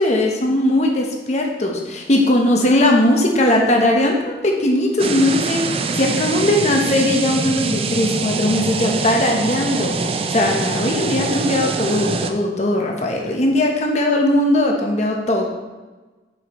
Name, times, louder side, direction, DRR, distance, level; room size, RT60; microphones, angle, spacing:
voice 1, 0.0-10.0 10.3-15.5, left 1 dB, 40° left, 1 dB, 0.9 m, -19 dB
sound 1, 5.0-12.3, right 4 dB, 30° right, 0.4 m, -24 dB
7.3 x 5.2 x 3.1 m, 1.2 s
head